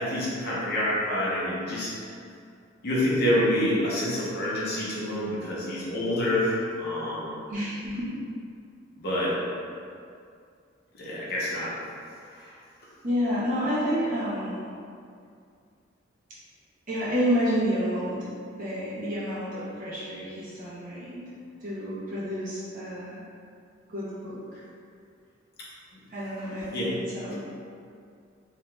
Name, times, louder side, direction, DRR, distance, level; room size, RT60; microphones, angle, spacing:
voice 1, 0.0-2.0 2.8-7.4 9.0-9.4 10.9-11.7 12.3-12.6 26.7-27.0, left 1 dB, 55° left, -7 dB, 0.7 m, -27 dB
voice 2, 7.5-8.2 13.0-14.6 16.9-18.3 18.5-21.3 21.6-23.3 23.9-24.6 26.1-27.4, equal, 45° right, -10 dB, 0.9 m, -29 dB
2.8 x 2.3 x 3.1 m, 2.3 s
head